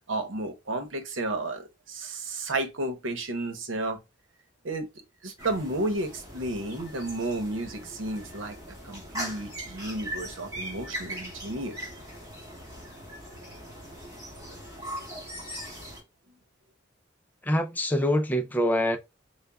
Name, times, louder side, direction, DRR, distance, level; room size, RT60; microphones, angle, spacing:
voice 1, 0.1-4.0 4.6-4.9 5.2-8.6 8.8-11.8, right 2 dB, 90° right, 0.9 m, -32 dB
sound 1, 5.4-16.0, equal, 20° right, 2.0 m, -40 dB
voice 2, 17.4-19.0, equal, 10° left, 0.5 m, -25 dB
6.8 x 2.3 x 2.3 m
head